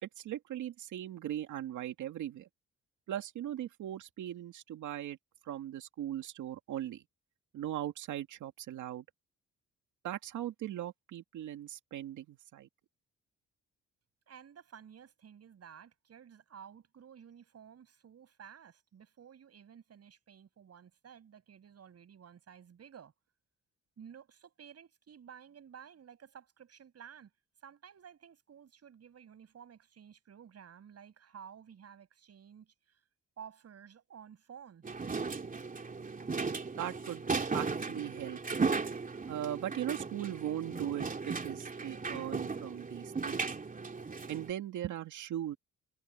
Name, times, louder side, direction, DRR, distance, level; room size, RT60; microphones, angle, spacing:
voice 1, 0.2-2.5 3.1-5.2 5.4-7.0 7.5-9.0 10.0-12.7 36.8-37.2 37.5-38.4 39.2-43.4 44.3-45.6, right 11 dB, 80° right, 2.3 m, -39 dB
voice 2, 14.3-23.1 24.0-27.3 27.6-33.0 33.4-34.9, right 8 dB, 55° right, 7.8 m, -53 dB
sound 1, 34.8-44.5, right 4 dB, 25° right, 3.0 m, -36 dB
cardioid pair, 90°, 30 cm